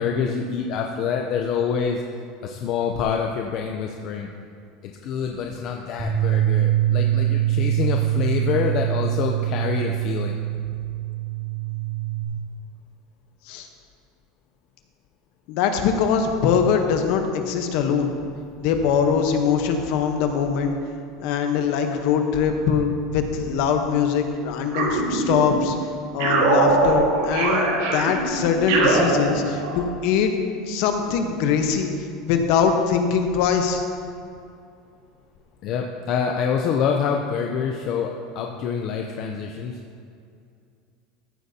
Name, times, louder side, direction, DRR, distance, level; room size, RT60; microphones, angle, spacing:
voice 1, 0.0-2.0 2.4-4.3 4.8-10.4 35.6-39.8, left 6 dB, 45° left, 2 dB, 0.5 m, -26 dB
Bass guitar, 6.0-12.2, right 13 dB, 30° right, 2.4 m, -23 dB
voice 2, 15.5-18.1 18.6-20.7 21.2-25.7 26.1-30.3 30.7-31.9 32.3-33.9, left 6 dB, 60° left, 5 dB, 0.9 m, -22 dB
sound 1, 24.7-25.7 26.2-29.8, right 3 dB, 90° right, 1.8 m, -22 dB
14.0 x 7.8 x 2.8 m, 2.4 s
supercardioid pair, 160°, 0 cm